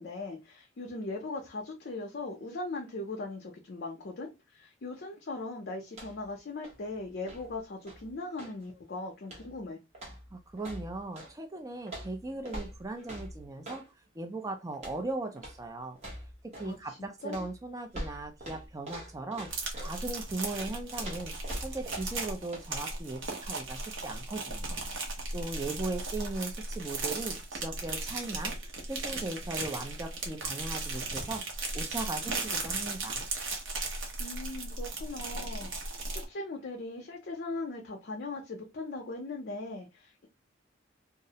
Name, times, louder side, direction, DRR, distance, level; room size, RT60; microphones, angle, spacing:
voice 1, 0.0-9.8 16.6-17.4 34.2-40.3, left 2 dB, 55° left, 0.4 m, -39 dB
sound 1, 5.9-6.3 6.6-8.6 9.2-9.6 9.9-11.3 11.9-13.9 14.7-15.1 15.4-15.6 16.0-16.8 17.3-20.0 20.5-22.3 22.5-22.7, right 1 dB, 35° right, 0.9 m, -44 dB
voice 2, 10.3-13.8 14.2-16.0 16.6-19.5 19.8-21.3 21.6-24.8 25.3-28.5 28.9-31.4 31.7-33.3, right 2 dB, 15° right, 0.3 m, -38 dB
sound 2, 19.5-36.2, right 3 dB, 70° right, 0.8 m, -36 dB
2.4 x 2.0 x 2.7 m
head